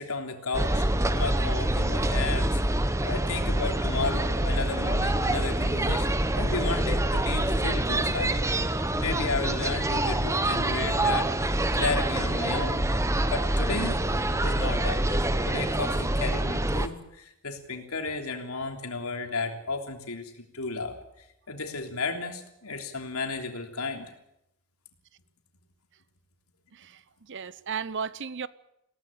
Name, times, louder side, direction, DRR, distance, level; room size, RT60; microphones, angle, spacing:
voice 1, 0.0-2.6 3.0-12.8 13.3-14.1 14.4-24.1, left 3 dB, 80° left, 3.3 m, -34 dB
sound 1, 0.5-16.9, right 1 dB, 15° right, 0.9 m, -26 dB
voice 2, 26.7-28.5, right 6 dB, 55° right, 0.8 m, -35 dB
20.5 x 17.0 x 8.8 m
head